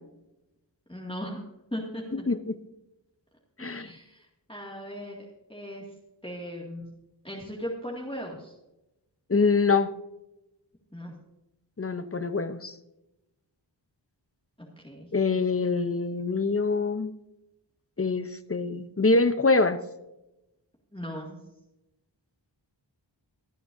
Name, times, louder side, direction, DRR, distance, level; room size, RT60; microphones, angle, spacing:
voice 1, 0.9-1.4 1.7-2.3 3.6-5.8 6.2-6.8 7.2-8.5 10.9-11.1 14.6-15.1 20.9-21.4, equal, 10° left, -4 dB, 2.1 m, -38 dB
voice 2, 2.1-2.6 3.6-3.9 9.3-9.9 11.8-12.7 15.1-17.1 18.0-19.8, left 3 dB, 30° left, 12 dB, 0.8 m, -25 dB
24.5 x 8.6 x 2.7 m, 0.93 s
wide cardioid pair, 40°, 45 cm